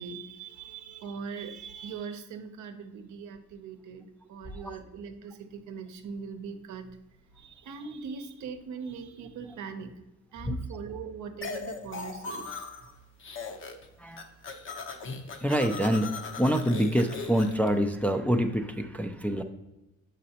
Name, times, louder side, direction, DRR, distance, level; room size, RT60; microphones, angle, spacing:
voice 1, 0.0-6.9 7.4-10.0 10.3-12.7, right 6 dB, 75° right, 7 dB, 0.7 m, -41 dB
voice 2, 4.5-4.8 14.0-14.3 15.4-19.4, equal, 5° left, 4 dB, 0.4 m, -26 dB
sound 1, 11.4-12.9 13.2-13.9 14.1-17.7, left 4 dB, 40° left, 0.8 m, -39 dB
6.4 x 5.2 x 2.8 m, 0.98 s
cardioid pair, 90°, 30 cm